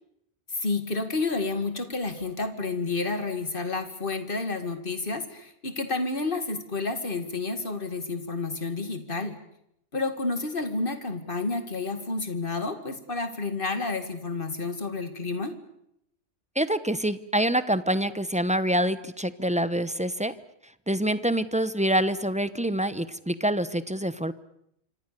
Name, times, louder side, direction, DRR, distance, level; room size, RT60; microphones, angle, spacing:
voice 1, 0.5-9.4 9.9-15.5, left 3 dB, 50° left, 9 dB, 2.5 m, -30 dB
voice 2, 16.6-20.3 20.9-24.3, right 1 dB, 5° right, 14 dB, 0.8 m, -26 dB
26.5 x 26.0 x 6.9 m, 0.75 s
omnidirectional pair, 1.2 m